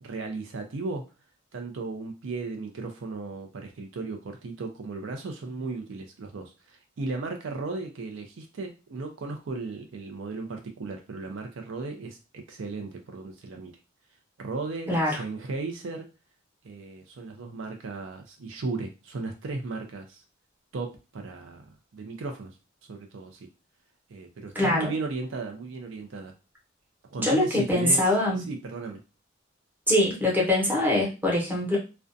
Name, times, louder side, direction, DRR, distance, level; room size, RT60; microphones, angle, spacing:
voice 1, 0.0-1.0 1.5-13.8 14.4-16.1 16.6-20.2 20.7-22.5 22.9-23.5 24.1-26.3 27.0-29.0, right 3 dB, 70° right, 3 dB, 0.4 m, -36 dB
voice 2, 14.9-15.2 24.5-24.9 27.2-28.4 29.9-31.8, left 1 dB, 10° right, -3 dB, 0.8 m, -23 dB
2.4 x 2.2 x 2.5 m, 0.30 s
head